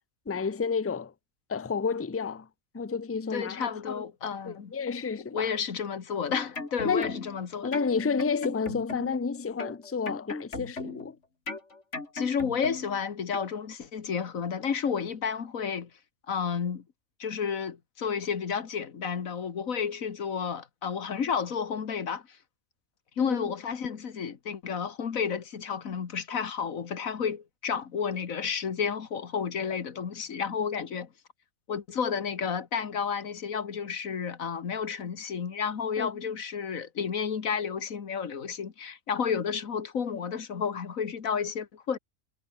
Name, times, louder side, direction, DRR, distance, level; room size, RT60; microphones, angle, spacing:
voice 1, 0.3-1.1 1.5-2.5 2.7-4.1 4.5-5.5 6.8-7.2 7.6-11.2 23.2-23.5 36.0-36.1, left 5 dB, 20° left, 0.3 m, -30 dB
voice 2, 3.3-4.7 5.3-7.7 12.1-15.9 16.3-16.8 17.2-22.2 23.2-31.1 31.7-42.0, left 6 dB, 85° left, 1.9 m, -31 dB
sound 1, 6.1-7.4 7.7-9.2 9.6-11.1 11.5-13.0 13.3-13.5, left 3 dB, 60° left, 3.6 m, -37 dB
omnidirectional pair, 1.4 m